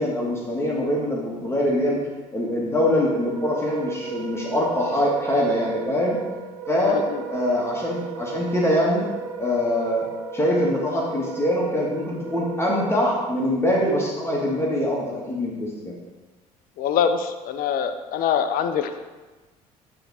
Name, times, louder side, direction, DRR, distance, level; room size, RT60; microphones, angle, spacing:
voice 1, 0.0-2.0 2.3-6.2 6.7-7.0 7.3-9.1 9.4-10.1 10.3-15.9, left 1 dB, 15° left, -3 dB, 1.9 m, -23 dB
Wind instrument woodwind instrument, 3.3-13.3, right 6 dB, 70° right, 0.9 m, -36 dB
voice 2, 6.9-7.2 16.8-19.0, left 7 dB, 50° left, 9 dB, 0.6 m, -24 dB
9.9 x 3.6 x 4.3 m, 1.2 s
figure-of-eight pair, 55°, 19 cm